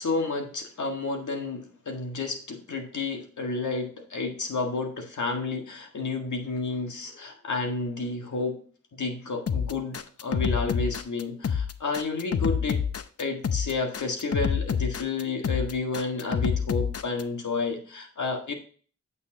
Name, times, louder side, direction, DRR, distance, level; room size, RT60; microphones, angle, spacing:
voice 1, 0.0-8.6 9.0-12.8 13.2-18.5, left 3 dB, 70° left, 4 dB, 1.7 m, -31 dB
sound 1, 9.5-17.2, left 7 dB, 55° left, 0.7 m, -27 dB
8.3 x 7.0 x 2.8 m, 0.43 s
cardioid pair, 45°, 30 cm